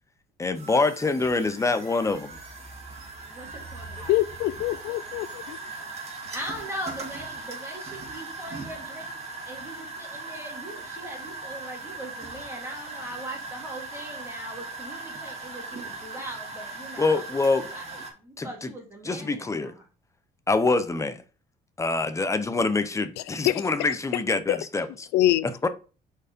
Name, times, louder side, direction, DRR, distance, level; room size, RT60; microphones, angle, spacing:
voice 1, 0.4-2.4 17.0-17.7 18.4-18.7 19.0-19.7 20.5-21.2 21.8-25.1 25.4-25.7, left 3 dB, 15° left, 0.7 m, -25 dB
sound 1, 0.5-18.1, right 3 dB, 40° right, 2.1 m, -39 dB
voice 2, 3.3-4.2 6.3-17.2 17.7-19.8, right 1 dB, 15° right, 2.2 m, -40 dB
voice 3, 4.1-5.6 23.5-23.6 24.5-24.6 25.1-25.5, left 15 dB, 85° left, 0.4 m, -24 dB
4.8 x 4.6 x 5.1 m
cardioid pair, 110°, 17 cm